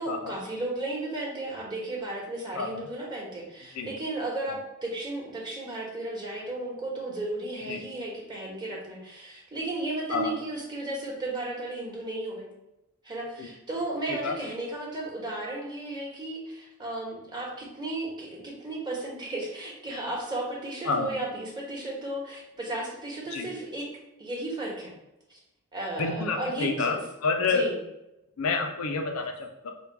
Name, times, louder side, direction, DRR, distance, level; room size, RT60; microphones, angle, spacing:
voice 1, 0.0-12.5 13.0-23.9 24.2-24.9 25.3-25.4 25.7-27.0 27.4-27.7, right 2 dB, 20° right, -3 dB, 1.0 m, -34 dB
voice 2, 2.5-2.9 3.7-3.9 4.5-4.6 7.6-7.8 10.1-10.3 13.4-13.5 14.1-14.4 20.8-21.1 23.3-23.5 26.0-27.7 28.4-29.7, left 4 dB, 80° left, 4 dB, 0.5 m, -29 dB
3.6 x 2.2 x 4.5 m, 0.91 s
head